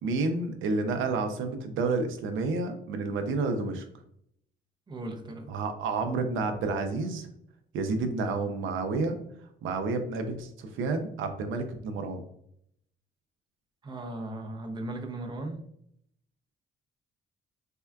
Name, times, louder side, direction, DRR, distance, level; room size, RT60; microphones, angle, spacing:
voice 1, 0.0-3.9 5.5-7.3 7.7-9.2 9.6-12.2, right 3 dB, 80° right, 7 dB, 0.4 m, -30 dB
voice 2, 4.9-5.5 13.8-15.6, right 2 dB, 25° right, 4 dB, 0.5 m, -37 dB
3.5 x 2.2 x 2.2 m, 0.71 s
cardioid pair, 90°, 20 cm